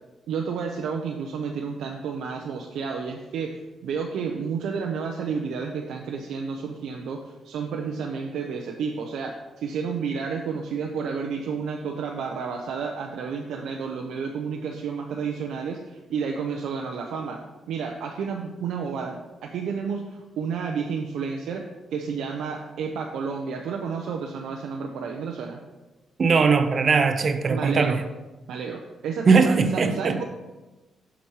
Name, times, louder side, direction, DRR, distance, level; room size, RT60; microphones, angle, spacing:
voice 1, 0.3-17.4 17.7-21.6 21.9-25.6 27.5-28.0 28.5-30.2, right 5 dB, 90° right, 2 dB, 0.6 m, -31 dB
voice 2, 26.2-28.0 29.3-30.2, right 4 dB, 45° right, 9 dB, 0.6 m, -20 dB
7.1 x 5.1 x 4.6 m, 1.1 s
cardioid pair, 110°, 0 cm